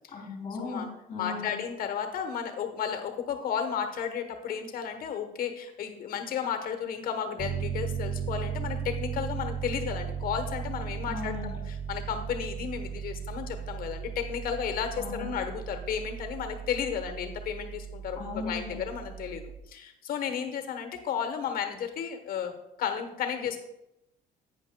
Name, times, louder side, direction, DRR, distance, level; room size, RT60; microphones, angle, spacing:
voice 1, 0.1-1.6 11.1-11.6 15.0-15.3 18.2-18.7, left 3 dB, 35° left, -5 dB, 3.0 m, -37 dB
voice 2, 1.2-23.6, left 7 dB, 60° left, 7 dB, 1.0 m, -33 dB
Piano, 7.4-19.6, right 7 dB, 30° right, 0.7 m, -36 dB
11.0 x 9.2 x 2.2 m, 0.87 s
cardioid pair, 110°, 17 cm